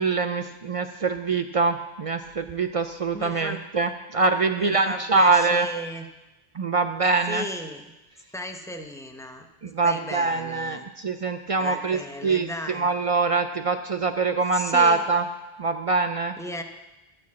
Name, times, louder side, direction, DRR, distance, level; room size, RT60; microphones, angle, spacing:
voice 1, 0.0-5.7 6.5-7.5 9.7-15.3 15.6-16.3, right 3 dB, 55° right, 8 dB, 0.4 m, -24 dB
voice 2, 3.1-3.7 4.5-6.1 7.3-7.8 8.3-9.5 9.8-10.8 11.6-12.9 14.5-15.0 16.4-16.6, left 1 dB, 5° left, 5 dB, 0.6 m, -35 dB
13.0 x 4.5 x 8.3 m, 1.0 s
omnidirectional pair, 1.1 m